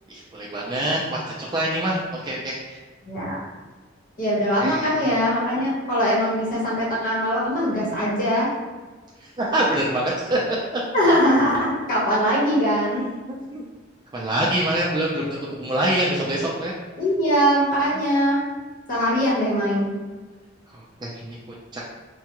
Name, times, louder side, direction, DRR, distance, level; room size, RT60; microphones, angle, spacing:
voice 1, 0.1-2.8 4.6-5.1 9.2-10.4 10.7-10.8 12.9-13.6 14.1-15.3 15.6-16.7 20.7-21.4 21.7-21.8, right 1 dB, 20° right, -4 dB, 0.4 m, -25 dB
voice 2, 3.0-3.4 4.2-8.5 10.9-13.0 17.0-18.4 18.9-19.9, equal, 45° left, -7 dB, 1.1 m, -21 dB
4.5 x 2.3 x 2.9 m, 1.3 s
head